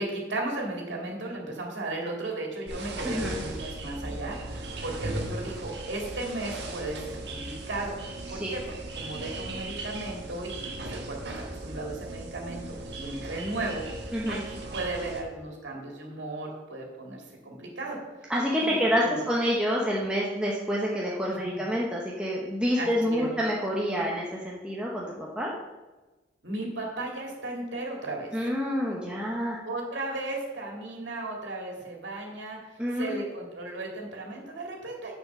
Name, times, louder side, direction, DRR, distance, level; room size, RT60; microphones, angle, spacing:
voice 1, 0.0-7.9 8.3-8.6 9.0-18.0 18.6-19.2 21.3-21.6 22.8-23.3 26.4-28.4 29.6-35.1, right 2 dB, 80° right, -1 dB, 2.3 m, -35 dB
sound 1, 2.7-15.2, right 2 dB, 65° right, 1.5 m, -38 dB
voice 2, 3.0-3.4 8.3-8.6 14.1-14.4 18.3-25.5 28.3-29.6 32.8-33.2, equal, 5° right, -4 dB, 1.0 m, -28 dB
7.3 x 7.1 x 5.9 m, 1.2 s
head